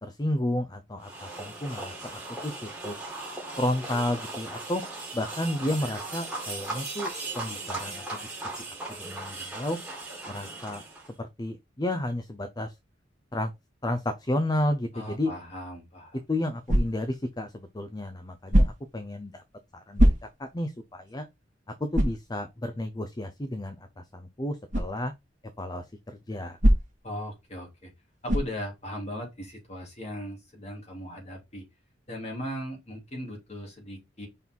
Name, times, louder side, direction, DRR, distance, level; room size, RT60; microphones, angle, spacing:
voice 1, 0.0-3.0 3.6-4.8 5.1-8.4 8.7-9.8 10.3-10.8 11.2-12.7 13.3-13.5 13.8-15.3 16.3-19.4 19.7-21.3 21.8-25.1 25.6-26.6, left 1 dB, 20° left, 0.6 m, -32 dB
sound 1, 1.0-11.1, right 2 dB, 5° right, 2.5 m, -38 dB
voice 2, 14.9-16.2 27.0-27.9 28.2-31.6 32.1-34.3, equal, 35° left, 2.9 m, -38 dB
sound 2, 16.7-17.2 18.5-19.0 20.0-20.6 21.1-21.2 21.9-22.3 24.7-25.0 26.6-27.1 28.3-28.6, equal, 45° right, 1.9 m, -22 dB
5.4 x 4.1 x 4.5 m
head